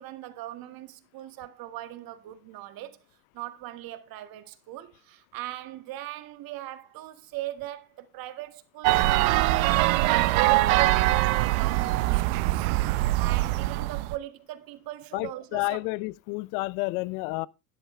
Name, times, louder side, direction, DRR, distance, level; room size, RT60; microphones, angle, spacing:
voice 1, 0.0-3.0 3.3-9.9 10.3-12.7 13.2-15.8, right 15 dB, 55° right, 1.9 m, -39 dB
sound 1, 8.8-14.2, right 18 dB, 75° right, 0.9 m, -23 dB
voice 2, 15.1-17.5, left 22 dB, 75° left, 0.7 m, -30 dB
12.5 x 10.0 x 3.3 m
supercardioid pair, 100°, 41 cm